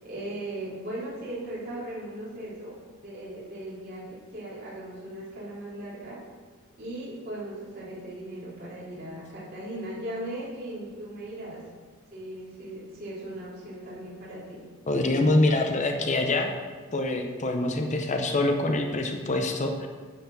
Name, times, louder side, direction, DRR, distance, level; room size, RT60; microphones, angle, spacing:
voice 1, 0.0-2.7 3.0-6.2 6.8-11.6 12.1-14.6, right 1 dB, 45° right, -9 dB, 3.2 m, -38 dB
voice 2, 14.9-16.5 16.9-19.9, left 2 dB, 35° left, 4 dB, 0.7 m, -25 dB
10.0 x 4.3 x 6.8 m, 1.5 s
head